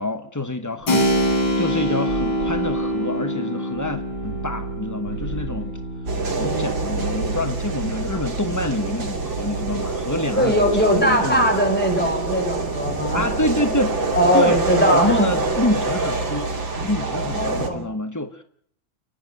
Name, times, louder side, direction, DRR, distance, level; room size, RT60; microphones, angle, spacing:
voice 1, 0.0-5.7 6.4-11.5 13.1-14.0 14.3-14.6 14.9-16.5 16.8-18.4, left 1 dB, 25° left, 8 dB, 0.4 m, -26 dB
sound 1, 0.8-3.2 3.7-6.2 6.6-8.8 9.3-11.2 11.8-12.8 13.0-13.5 14.4-15.1 15.4-15.9, right 4 dB, 55° right, 3.1 m, -37 dB
Keyboard (musical), 0.9-9.2, equal, 85° left, 4.3 m, -26 dB
sound 2, 6.1-17.7, right 3 dB, 75° right, 3.8 m, -26 dB
voice 2, 6.4-7.0 10.4-13.2 14.1-15.3 17.1-17.8, equal, 5° left, 3 dB, 5.5 m, -21 dB
29.5 x 10.5 x 9.2 m, 0.64 s
omnidirectional pair, 2.1 m